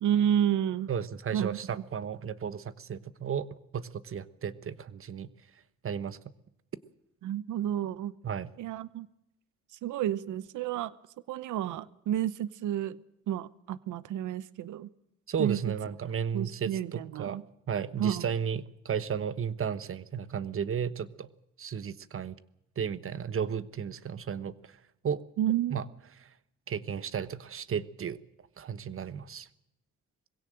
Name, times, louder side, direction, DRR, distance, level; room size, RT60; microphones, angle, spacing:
voice 1, 0.0-0.9 1.3-1.8 7.2-8.1 8.6-9.1 9.8-10.9 11.3-14.9 15.4-15.7 16.3-17.4 18.0-18.3 25.4-25.8, right 10 dB, 80° right, 18 dB, 0.9 m, -30 dB
voice 2, 0.9-3.5 3.7-5.3 5.8-6.2 8.2-8.5 15.3-17.4 17.7-21.3 21.6-22.4 22.8-24.5 25.0-25.2 25.7-25.8 26.7-28.2 28.6-29.5, right 7 dB, 45° right, 15 dB, 1.2 m, -33 dB
21.5 x 16.5 x 7.8 m, 0.84 s
cardioid pair, 90°, 30 cm